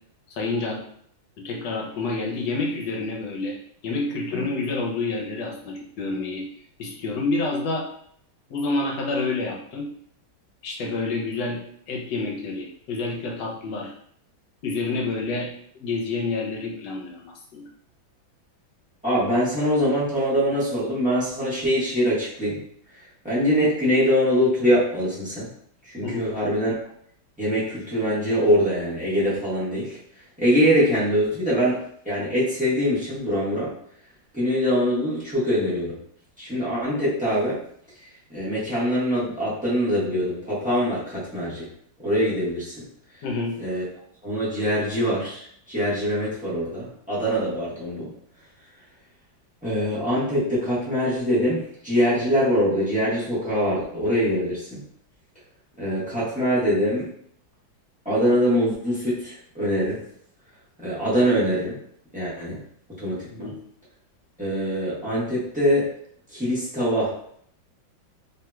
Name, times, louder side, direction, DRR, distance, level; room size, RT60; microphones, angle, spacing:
voice 1, 0.3-0.8 1.4-3.6 3.8-6.5 6.8-7.9 8.5-9.9 10.6-13.9 14.6-17.7 26.0-26.3 43.2-43.6 63.3-63.6, left 3 dB, 70° left, 0 dB, 1.2 m, -28 dB
voice 2, 19.0-22.6 23.2-25.5 25.8-26.7 27.4-30.0 30.4-33.7 34.3-36.0 36.4-37.6 38.3-41.7 42.0-42.8 43.6-43.8 44.2-48.1 49.6-54.8 55.8-57.1 58.0-60.0 60.8-61.8 62.1-62.6 63.0-63.5 64.4-65.9 66.3-67.1, equal, 5° right, -9 dB, 0.8 m, -23 dB
3.5 x 2.8 x 2.3 m, 0.64 s
omnidirectional pair, 2.2 m